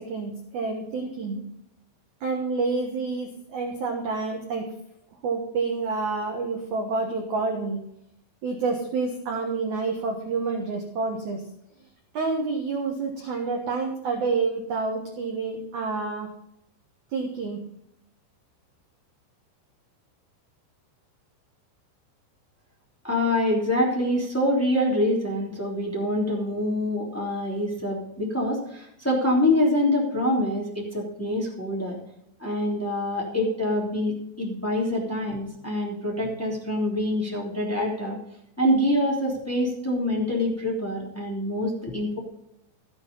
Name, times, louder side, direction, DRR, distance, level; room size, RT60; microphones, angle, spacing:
voice 1, 0.0-1.4 2.2-4.7 5.2-7.8 8.4-11.4 12.1-16.3 17.1-17.6, right 4 dB, 65° right, 2 dB, 2.0 m, -28 dB
voice 2, 23.0-32.0 32.4-38.2 38.6-42.2, left 1 dB, 5° left, -2 dB, 2.5 m, -25 dB
14.0 x 8.0 x 5.4 m, 0.77 s
omnidirectional pair, 5.2 m